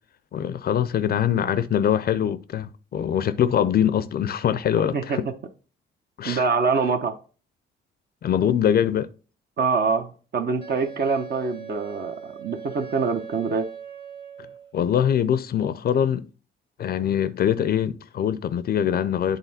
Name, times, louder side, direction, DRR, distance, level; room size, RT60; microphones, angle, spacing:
voice 1, 0.3-5.2 6.2-6.4 8.2-9.1 14.7-16.3 16.8-19.4, left 9 dB, 50° left, 0.4 m, -23 dB
voice 2, 6.2-7.1 9.6-13.7, right 5 dB, 55° right, 0.8 m, -25 dB
Wind instrument woodwind instrument, 10.6-14.7, right 8 dB, 25° right, 1.1 m, -40 dB
8.2 x 3.8 x 4.1 m
cardioid pair, 90°, 20 cm